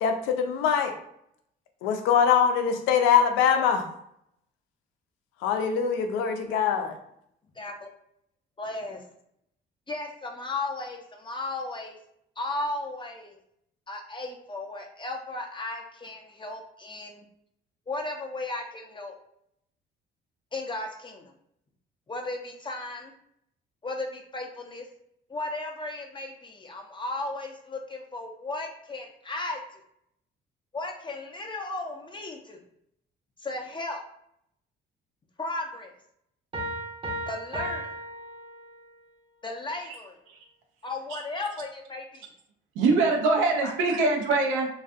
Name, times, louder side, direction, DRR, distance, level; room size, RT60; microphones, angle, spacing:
voice 1, 0.0-0.9 1.8-3.8 5.4-7.0, left 7 dB, 80° left, 6 dB, 0.4 m, -23 dB
voice 2, 7.6-7.9 8.6-9.0 9.9-12.0 12.4-13.4 13.9-17.2 17.9-19.1 20.5-21.3 22.1-23.1 23.8-24.8 25.3-29.6 30.7-32.6 33.4-34.0 35.4-35.9 37.3-37.9 39.4-40.2 40.8-42.3 43.4-43.7, left 2 dB, 25° left, 1 dB, 0.5 m, -35 dB
Piano, 36.5-39.0, right 1 dB, 30° right, 0.6 m, -35 dB
voice 3, 42.8-44.7, right 3 dB, 85° right, 1 dB, 0.5 m, -23 dB
2.5 x 2.3 x 2.4 m, 0.74 s
supercardioid pair, 65°, 20 cm